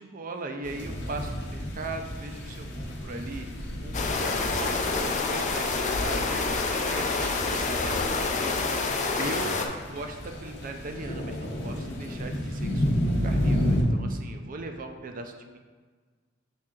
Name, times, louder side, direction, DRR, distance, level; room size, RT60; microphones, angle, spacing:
voice 1, 0.0-8.1 8.4-9.5 9.9-15.6, right 2 dB, 45° right, 5 dB, 0.5 m, -39 dB
sound 1, 0.6-13.8, equal, 60° left, 0.9 m, -32 dB
sound 2, 3.9-9.7, left 3 dB, 40° left, 0.5 m, -27 dB
5.9 x 4.3 x 3.7 m, 1.5 s
head